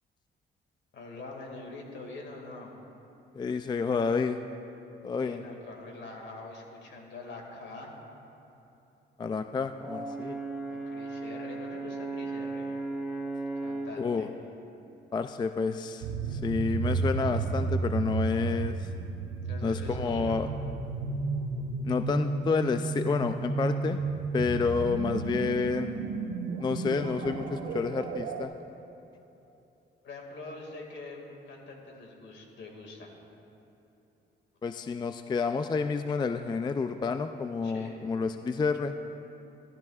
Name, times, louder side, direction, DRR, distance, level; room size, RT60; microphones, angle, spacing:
voice 1, 0.9-2.7 5.2-8.0 10.7-12.8 13.6-14.3 19.5-20.4 30.0-33.1 37.6-38.0, left 3 dB, 65° left, 1 dB, 2.1 m, -44 dB
voice 2, 3.3-4.4 5.0-5.4 9.2-10.4 14.0-14.3 15.1-18.9 19.6-20.5 21.8-24.0 24.3-26.0 26.6-28.5 34.6-39.0, left 5 dB, 20° left, 9 dB, 0.3 m, -29 dB
Brass instrument, 9.8-14.0, right 2 dB, 5° right, 1.3 m, -36 dB
sound 1, 16.0-28.4, right 4 dB, 85° right, 0.8 m, -32 dB
15.0 x 13.5 x 2.4 m, 2.9 s
cardioid pair, 90°, 20 cm